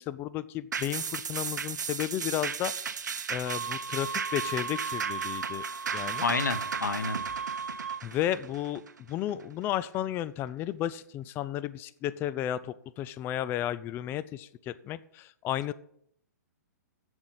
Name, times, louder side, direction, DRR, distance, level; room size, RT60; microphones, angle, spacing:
voice 1, 0.0-2.7 3.3-5.6 5.9-6.3 8.0-8.8 9.1-15.7, left 12 dB, 20° left, 16 dB, 0.4 m, -33 dB
sound 1, 0.7-9.4 9.8-9.9, right 6 dB, 85° right, 0.7 m, -36 dB
sound 2, 3.4-8.0, right 6 dB, 30° right, 3.4 m, -36 dB
voice 2, 6.0-7.2, left 4 dB, 90° left, 12 dB, 1.0 m, -30 dB
7.9 x 7.7 x 7.4 m, 0.68 s
hypercardioid pair, 135°, 10 cm